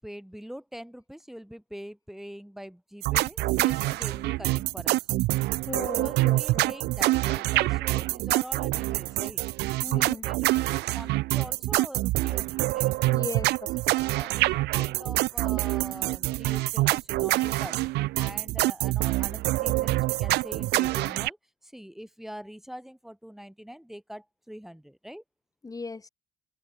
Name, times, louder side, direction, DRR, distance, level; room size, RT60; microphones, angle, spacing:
voice 1, 0.0-5.1 5.9-9.4 9.9-12.9 13.8-17.8 18.2-21.4 21.6-25.2, equal, ahead, 7.6 m, -43 dB
sound 1, 3.0-21.3, right 19 dB, 80° right, 0.6 m, -26 dB
voice 2, 5.7-6.7 9.8-10.3 13.0-13.8 25.6-26.1, left 3 dB, 20° left, 4.7 m, -37 dB
open air
cardioid pair, 110°, 17 cm